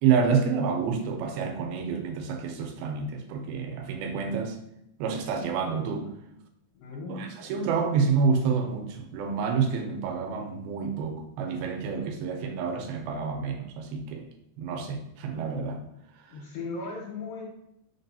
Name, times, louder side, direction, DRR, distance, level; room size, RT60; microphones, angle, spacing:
voice 1, 0.0-4.6 5.0-6.1 7.1-14.3 14.6-15.8, right 5 dB, 85° right, 4 dB, 2.5 m, -28 dB
voice 2, 6.7-7.3 16.3-17.4, left 3 dB, 75° left, -4 dB, 2.6 m, -37 dB
4.9 x 3.9 x 2.7 m, 0.79 s
omnidirectional pair, 4.2 m